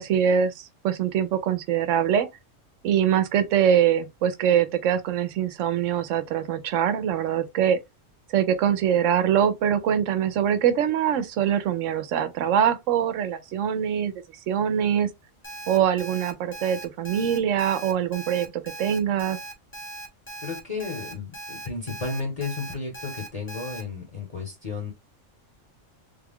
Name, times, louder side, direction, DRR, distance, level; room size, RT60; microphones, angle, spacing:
voice 1, 0.0-2.3 2.8-7.8 8.3-14.1 14.5-15.1 15.7-18.5 18.8-19.4, right 9 dB, 80° right, 1.0 m, -23 dB
Alarm, 15.4-23.8, right 2 dB, 15° left, 0.5 m, -39 dB
voice 2, 20.4-24.9, left 4 dB, 35° left, 1.0 m, -33 dB
3.6 x 2.3 x 3.5 m
omnidirectional pair, 1.3 m